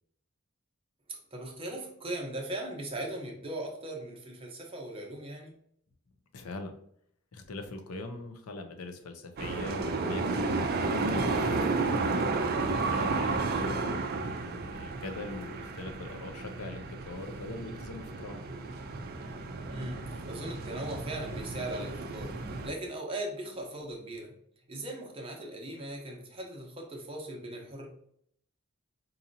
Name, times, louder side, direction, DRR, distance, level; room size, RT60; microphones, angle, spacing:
voice 1, 1.3-5.6 13.5-13.7 19.7-22.3 22.6-24.3 24.7-27.9, right 1 dB, 25° right, 0 dB, 0.8 m, -39 dB
voice 2, 6.3-6.7 7.3-10.6 10.8-12.2 12.7-14.0 14.3-18.4, left 2 dB, 80° left, 6 dB, 0.6 m, -41 dB
sound 1, 9.4-22.7, right 3 dB, 45° right, 0.4 m, -32 dB
4.0 x 2.7 x 2.6 m, 0.68 s
head